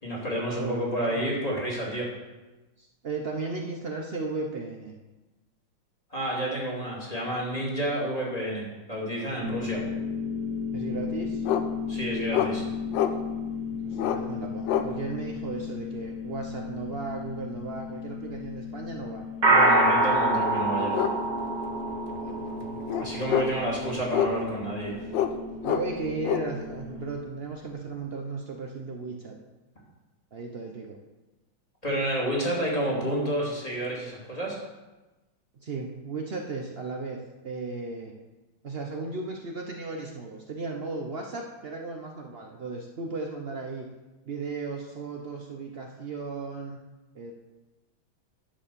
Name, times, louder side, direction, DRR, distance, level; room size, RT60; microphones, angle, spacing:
voice 1, 0.0-2.1 6.1-9.8 11.9-12.6 19.4-21.0 23.0-25.1 31.8-34.6, right 1 dB, 20° left, -5 dB, 2.6 m, -30 dB
voice 2, 0.6-1.6 2.8-4.9 10.7-11.5 13.8-19.2 22.2-22.8 25.6-29.3 30.3-31.0 35.6-37.2 37.4-38.1 38.6-43.9 44.3-46.8 47.1-47.3, right 3 dB, 85° right, 1 dB, 0.5 m, -35 dB
sound 1, 9.3-27.1, equal, 30° right, 0.9 m, -30 dB
sound 2, 11.4-11.6 12.3-12.5 12.9-13.1 13.9-14.2 14.6-14.9 16.9-17.1 20.0-20.1 20.9-21.1 21.4-21.5 21.9-22.3 22.9-23.6 24.1-24.6 25.1-25.4 25.6-26.5, left 10 dB, 70° left, 1.3 m, -26 dB
10.5 x 5.3 x 6.8 m, 1.1 s
omnidirectional pair, 2.3 m